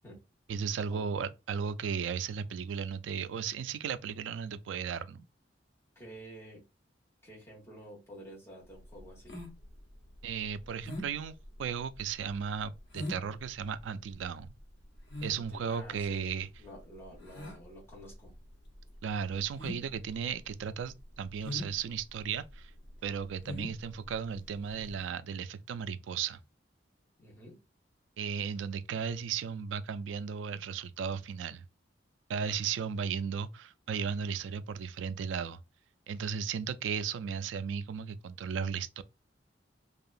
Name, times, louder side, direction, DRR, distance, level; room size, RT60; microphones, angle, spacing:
voice 1, 0.5-5.2 10.2-14.5 15.2-16.5 19.0-22.7 23.0-26.4 28.2-31.6 32.3-35.6 36.1-39.0, right 7 dB, 90° right, 0.3 m, -35 dB
voice 2, 5.9-6.6 7.2-9.4 15.2-16.3 16.6-18.3 27.2-27.6, equal, 15° left, 1.4 m, -50 dB
sound 1, 8.7-25.0, left 1 dB, 75° left, 0.9 m, -44 dB
2.7 x 2.3 x 2.5 m
head